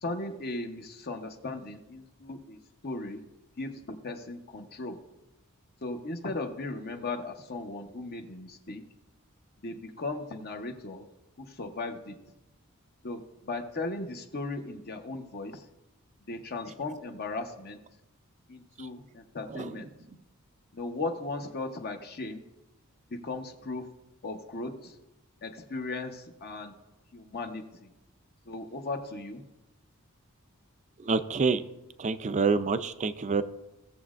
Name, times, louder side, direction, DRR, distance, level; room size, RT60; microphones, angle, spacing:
voice 1, 0.0-2.6 2.8-3.2 3.6-5.0 5.8-8.8 9.6-11.0 11.4-12.1 13.0-15.6 16.3-17.8 18.5-19.9 20.7-22.4 23.1-23.9 24.2-25.0 25.4-26.7 27.1-27.9 28.5-29.4, left 2 dB, 45° left, 4 dB, 0.9 m, -37 dB
voice 2, 31.0-31.6 32.0-33.4, right 4 dB, 35° right, 11 dB, 0.5 m, -27 dB
18.0 x 7.2 x 2.5 m, 0.96 s
head